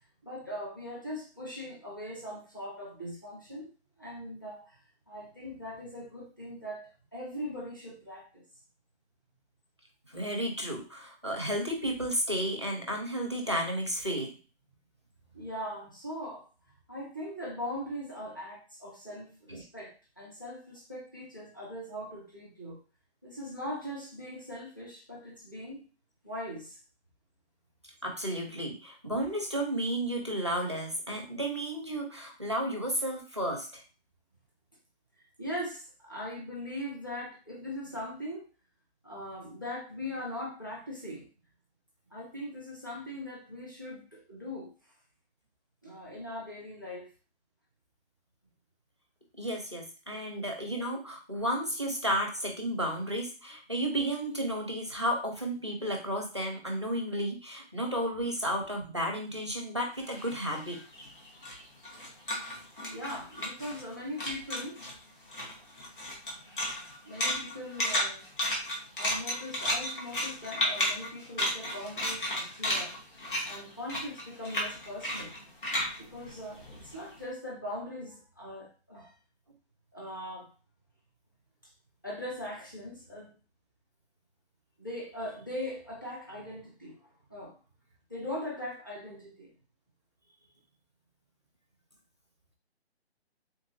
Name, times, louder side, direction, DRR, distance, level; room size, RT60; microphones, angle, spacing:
voice 1, 0.2-3.7 4.0-4.8 5.1-8.4 15.3-16.5 16.9-22.8 23.2-25.8 26.2-26.8 35.2-38.5 39.0-41.2 42.1-44.7 45.8-47.1 62.9-64.8 67.0-68.3 69.0-72.9 73.4-75.3 76.0-79.1 79.9-80.5 82.0-83.3 84.8-87.5 88.1-89.5, left 1 dB, 20° left, -5 dB, 0.6 m, -40 dB
voice 2, 10.1-14.4 19.5-19.6 28.0-33.8 49.4-60.8, equal, 25° right, 1 dB, 0.5 m, -32 dB
sound 1, 60.0-63.9 64.2-64.9 65.3-77.1, equal, 50° left, 1.4 m, -33 dB
3.6 x 2.9 x 2.6 m, 0.34 s
hypercardioid pair, 180°, 33 cm